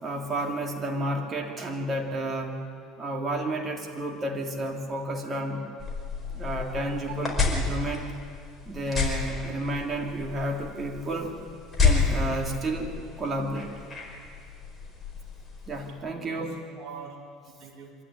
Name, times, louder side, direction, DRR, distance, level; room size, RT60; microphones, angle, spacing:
voice 1, 0.0-2.6 3.0-5.6 6.3-8.1 8.7-11.3 11.8-13.7 15.7-16.5, right 1 dB, 25° right, 1 dB, 3.1 m, -31 dB
sound 1, 5.8-15.9, left 5 dB, 15° left, 5.1 m, -30 dB
voice 2, 6.6-7.2 16.1-17.2 17.4-18.0, right 6 dB, 50° right, -3 dB, 4.9 m, -44 dB
25.0 x 13.0 x 10.0 m, 2.3 s
supercardioid pair, 120°, 0 cm